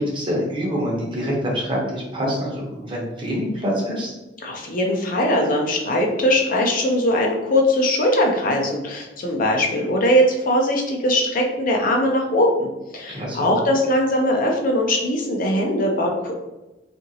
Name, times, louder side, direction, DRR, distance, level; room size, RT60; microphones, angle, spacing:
voice 1, 0.0-4.1 13.1-13.5, equal, 30° right, -3 dB, 0.8 m, -25 dB
voice 2, 4.4-12.7 12.9-16.4, left 1 dB, 50° left, 1 dB, 0.5 m, -20 dB
2.8 x 2.5 x 2.7 m, 1.0 s
head